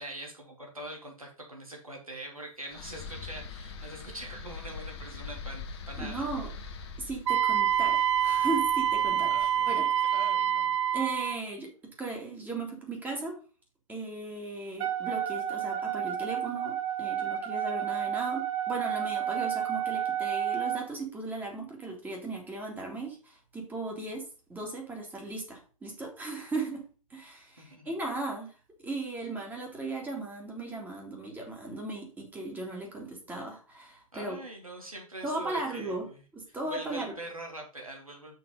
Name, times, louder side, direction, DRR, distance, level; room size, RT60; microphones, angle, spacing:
voice 1, 0.0-6.3 9.3-10.7 27.6-27.9 34.1-36.2 36.6-38.4, right 1 dB, 85° right, 0 dB, 3.0 m, -43 dB
sound 1, 2.7-9.8, left 5 dB, 50° left, 1.4 m, -43 dB
voice 2, 6.0-6.5 7.0-9.9 10.9-11.7 12.0-13.4 13.9-26.8 27.1-28.5 28.8-34.4 35.2-36.0 36.3-37.2, right 2 dB, 10° right, 0 dB, 2.5 m, -37 dB
Wind instrument woodwind instrument, 7.3-11.4, right 9 dB, 60° right, 0.4 m, -26 dB
Wind instrument woodwind instrument 2, 14.8-20.9, right 10 dB, 25° right, 1.0 m, -31 dB
6.4 x 5.7 x 5.4 m, 0.36 s
figure-of-eight pair, 105°, 17 cm